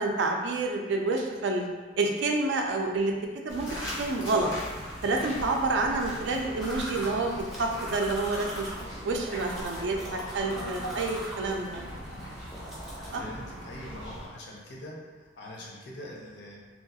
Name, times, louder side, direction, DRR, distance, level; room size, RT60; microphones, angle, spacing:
voice 1, 0.0-1.7 2.0-3.1 3.4-3.7 4.0-4.5 5.0-8.7 9.0-12.0 13.1-13.2, right 3 dB, 70° right, 2 dB, 0.3 m, -28 dB
sound 1, 3.5-14.3, equal, 80° left, 0.9 m, -40 dB
sound 2, 6.5-13.1, equal, ahead, 0.4 m, -42 dB
voice 2, 13.1-16.6, left 1 dB, 65° left, -2 dB, 0.6 m, -43 dB
2.8 x 2.3 x 2.7 m, 1.3 s
head